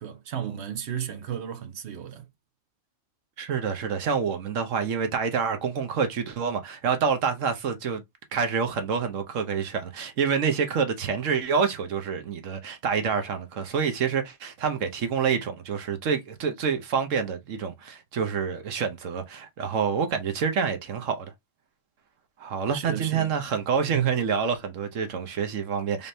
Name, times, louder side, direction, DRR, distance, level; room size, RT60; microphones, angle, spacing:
voice 1, 0.0-2.3 22.7-23.3 23.9-24.1, right 10 dB, 60° right, 1.0 m, -33 dB
voice 2, 3.4-8.0 8.3-21.3 22.4-26.1, right 6 dB, 80° right, 1.2 m, -27 dB
4.1 x 3.5 x 2.6 m
omnidirectional pair, 1.3 m